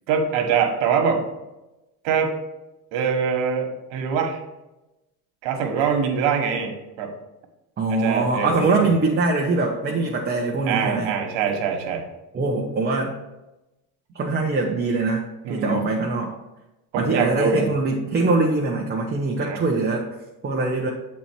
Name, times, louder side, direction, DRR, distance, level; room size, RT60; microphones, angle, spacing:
voice 1, 0.1-1.3 2.0-2.3 2.9-4.4 5.4-7.1 8.0-8.9 10.6-12.1 15.4-15.8 16.9-17.7 19.4-19.6, right 6 dB, 65° right, 4 dB, 1.6 m, -23 dB
voice 2, 7.8-11.1 12.3-13.1 14.1-16.3 17.0-20.1 20.4-20.9, right 3 dB, 20° right, -1 dB, 0.8 m, -23 dB
7.4 x 4.2 x 4.5 m, 0.99 s
supercardioid pair, 110°, 47 cm